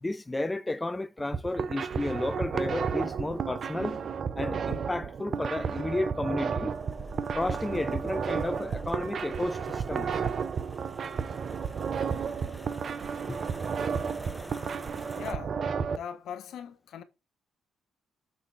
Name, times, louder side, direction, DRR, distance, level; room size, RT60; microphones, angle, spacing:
voice 1, 0.0-4.0 4.4-6.8 7.4-10.1 13.3-13.4, left 2 dB, 15° left, 0.4 m, -32 dB
sound 1, 1.2-16.0, right 6 dB, 50° right, 0.7 m, -32 dB
sound 2, 6.7-15.3, right 1 dB, 5° right, 1.2 m, -47 dB
voice 2, 15.2-15.6 15.9-17.0, left 8 dB, 75° left, 1.0 m, -40 dB
6.5 x 3.6 x 5.6 m
cardioid pair, 90°, 0 cm